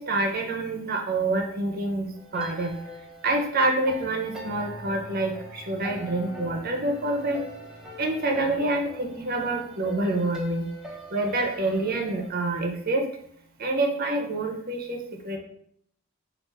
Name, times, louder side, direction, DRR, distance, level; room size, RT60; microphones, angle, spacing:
voice 1, 0.0-2.8 3.2-7.4 8.0-10.7 11.1-13.0 13.6-15.4, right 2 dB, 45° right, 2 dB, 0.7 m, -27 dB
sound 1, 2.1-12.3, left 1 dB, 5° right, 0.6 m, -42 dB
5.9 x 2.5 x 3.3 m, 0.68 s
head